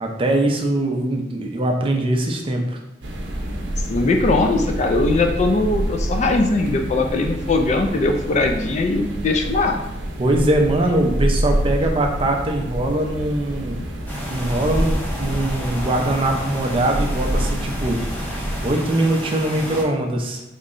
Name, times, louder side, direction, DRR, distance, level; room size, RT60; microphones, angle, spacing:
voice 1, 0.0-2.8 10.2-13.8 14.3-18.0 18.6-20.4, right 1 dB, 30° right, 2 dB, 0.4 m, -22 dB
sound 1, 3.0-18.8, right 1 dB, 85° right, 0.6 m, -27 dB
voice 2, 3.9-9.8, left 3 dB, 40° left, 5 dB, 0.3 m, -20 dB
sound 2, 14.1-19.8, equal, 10° left, 0.6 m, -29 dB
3.7 x 2.1 x 3.7 m, 0.93 s
head